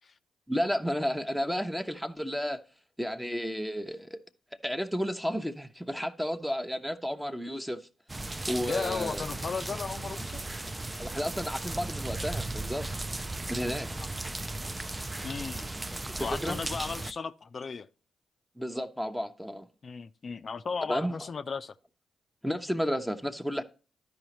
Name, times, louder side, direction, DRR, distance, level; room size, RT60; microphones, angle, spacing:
voice 1, 0.5-2.6 3.0-4.2 4.6-7.9 8.5-9.3 11.0-12.9 13.5-13.9 16.2-16.6 18.6-19.7 20.9-21.3 22.4-23.6, equal, 5° right, 0.8 m, -32 dB
sound 1, 8.1-17.1, right 2 dB, 20° right, 0.5 m, -36 dB
voice 2, 8.7-10.4 13.9-14.1 15.2-15.7 16.2-17.9 19.8-21.8, left 5 dB, 50° left, 0.4 m, -35 dB
12.5 x 4.9 x 3.0 m
hypercardioid pair, 45°, 0 cm